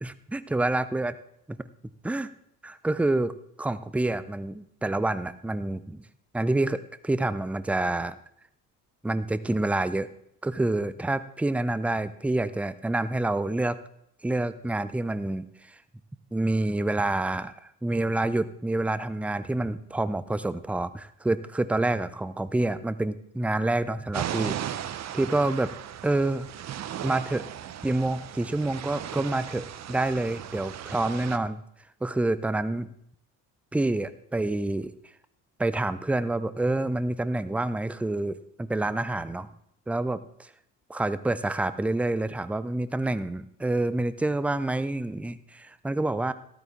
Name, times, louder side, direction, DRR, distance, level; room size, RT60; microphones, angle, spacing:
voice 1, 0.0-1.1 1.5-1.6 2.0-2.3 2.6-6.0 6.3-8.2 9.0-10.1 10.4-13.8 14.2-15.5 16.3-24.6 25.1-25.7 26.0-26.5 27.0-27.5 27.8-31.6 32.0-32.9 33.7-34.9 35.6-39.5 39.9-40.5 40.9-46.3, right 2 dB, 5° right, 15 dB, 0.5 m, -27 dB
sound 1, 24.1-31.4, right 10 dB, 35° right, 0.8 m, -36 dB
13.5 x 12.5 x 3.7 m, 0.72 s
figure-of-eight pair, 55°, 46 cm